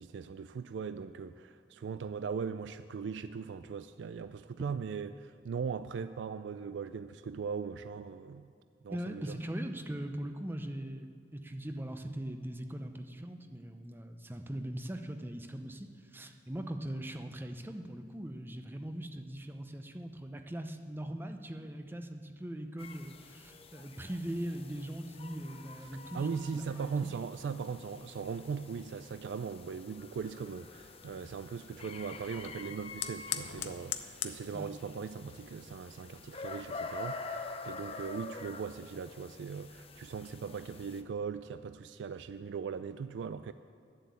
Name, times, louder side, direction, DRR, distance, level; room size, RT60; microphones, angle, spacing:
voice 1, 0.0-8.5 8.8-9.4 26.1-43.5, right 6 dB, 85° right, 12 dB, 0.3 m, -39 dB
voice 2, 8.9-26.9 34.5-34.7, right 1 dB, 10° right, 6 dB, 0.6 m, -40 dB
sound 1, 22.8-41.0, left 3 dB, 35° left, 0.7 m, -47 dB
Fire, 30.1-37.3, left 10 dB, 85° left, 0.7 m, -45 dB
11.5 x 7.7 x 8.3 m, 2.3 s
head